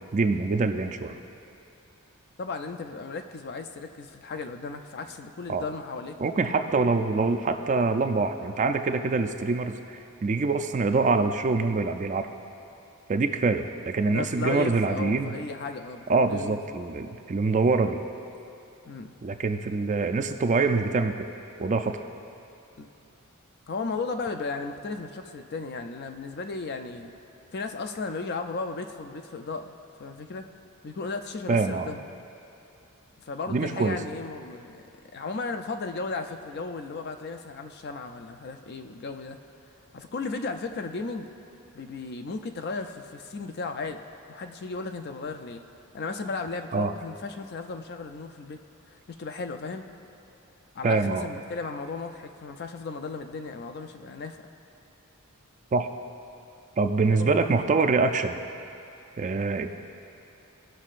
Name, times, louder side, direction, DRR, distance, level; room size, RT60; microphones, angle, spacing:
voice 1, 0.1-1.2 5.5-5.6 6.2-12.3 13.1-15.3 16.1-18.0 19.2-21.3 21.6-22.0 31.5-31.9 33.5-34.0 46.7-46.9 50.8-51.3 55.7-55.9 56.8-58.4 59.2-59.7, right 3 dB, 35° right, 7 dB, 0.4 m, -25 dB
voice 2, 2.4-6.2 14.1-17.1 18.8-19.1 22.8-22.9 23.7-27.1 27.5-29.7 30.0-30.5 30.8-32.0 33.2-34.8 35.1-39.4 39.9-41.3 41.7-44.0 44.3-45.6 45.9-48.6 48.9-49.8 50.7-54.4 57.0-57.3, left 4 dB, 45° left, 6 dB, 0.4 m, -35 dB
17.5 x 6.3 x 2.5 m, 2.8 s
head